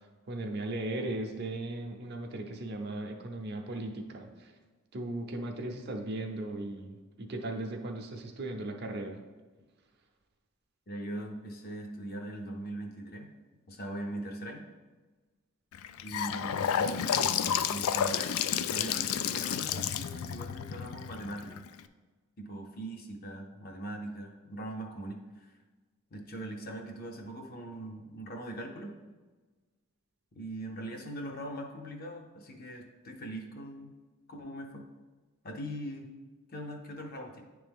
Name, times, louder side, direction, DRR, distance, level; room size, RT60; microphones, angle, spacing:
voice 1, 0.3-4.5 4.9-9.2, right 2 dB, 50° right, 3 dB, 0.6 m, -37 dB
voice 2, 10.9-13.3 13.7-14.7 16.0-17.4 17.6-18.4 18.7-21.6 22.4-25.6 26.1-29.0 30.3-33.9 34.3-34.8 35.4-36.1 36.5-37.4, right 1 dB, 45° left, 2 dB, 0.7 m, -41 dB
Gurgling / Sink (filling or washing) / Bathtub (filling or washing), 15.7-21.8, left 8 dB, 75° left, 0.3 m, -31 dB
9.7 x 3.4 x 3.5 m, 1.3 s
head